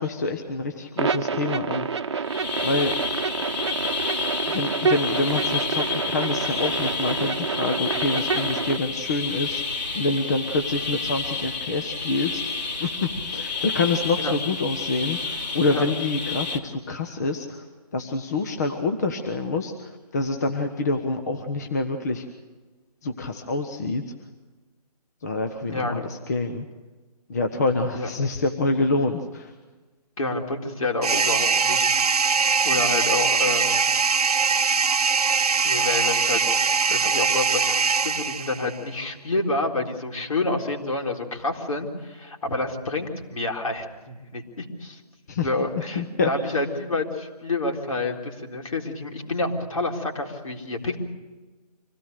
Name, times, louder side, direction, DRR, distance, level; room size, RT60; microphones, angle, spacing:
voice 1, 0.0-1.9 2.2-2.3 2.6-2.9 4.5-9.6 9.9-17.6 17.9-22.3 23.0-24.0 25.2-26.7 27.3-29.5 45.3-45.5 45.8-46.5, left 3 dB, 25° left, 6 dB, 1.1 m, -26 dB
sound 1, 1.0-8.8, right 5 dB, 45° right, 1.1 m, -28 dB
sound 2, 2.2-16.6, left 5 dB, 85° left, 3.3 m, -30 dB
voice 2, 25.7-26.1 27.9-28.1 28.7-28.8 30.2-31.9 32.6-33.8 35.6-36.4 36.9-45.0 45.4-51.0, left 2 dB, 60° left, 1 dB, 3.9 m, -28 dB
sound 3, 31.0-38.8, right 5 dB, 70° right, 0.7 m, -22 dB
25.5 x 17.0 x 6.8 m, 1.2 s
figure-of-eight pair, 165°, 20 cm